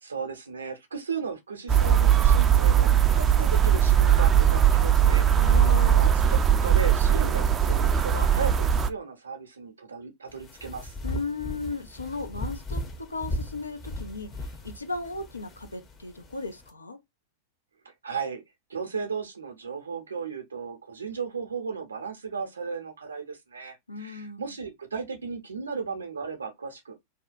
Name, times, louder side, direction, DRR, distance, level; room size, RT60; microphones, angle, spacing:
voice 1, 0.0-5.6 5.9-10.9 17.8-18.4 18.7-27.0, right 5 dB, 80° right, 0.7 m, -35 dB
sound 1, 1.7-8.9, right 9 dB, 25° right, 0.4 m, -20 dB
voice 2, 5.3-6.0 11.0-14.3 14.6-17.0 23.9-24.4, left 4 dB, 85° left, 0.5 m, -35 dB
sound 2, 10.3-16.7, left 1 dB, 25° left, 0.7 m, -37 dB
2.7 x 2.2 x 2.5 m
figure-of-eight pair, 95°, 0 cm